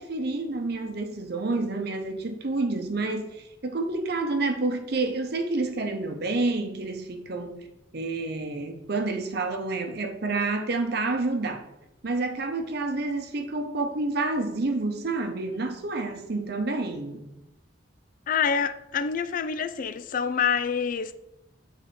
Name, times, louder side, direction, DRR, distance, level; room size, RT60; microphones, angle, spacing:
voice 1, 0.0-3.4 3.6-7.6 7.9-11.7 12.0-17.3, right 3 dB, 55° right, 0.8 m, -29 dB
voice 2, 18.3-21.1, left 6 dB, 45° left, 0.3 m, -26 dB
7.5 x 4.0 x 4.2 m
head